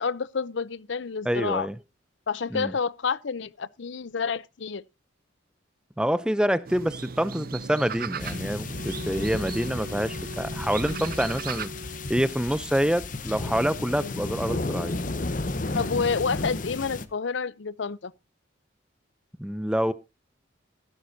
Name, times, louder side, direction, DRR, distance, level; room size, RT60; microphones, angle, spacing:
voice 1, 0.0-1.7 2.3-4.8 10.9-11.1 14.0-14.2 15.7-18.1, left 5 dB, 70° left, 0.6 m, -29 dB
voice 2, 1.2-1.8 2.5-2.7 6.0-11.7 12.1-15.0 19.4-19.9, equal, 5° right, 0.5 m, -26 dB
sound 1, 6.6-11.7, right 6 dB, 50° right, 0.6 m, -38 dB
sound 2, 8.2-17.1, left 2 dB, 40° left, 0.9 m, -33 dB
sound 3, 8.7-12.6, equal, 85° right, 2.1 m, -43 dB
15.0 x 11.5 x 2.7 m
head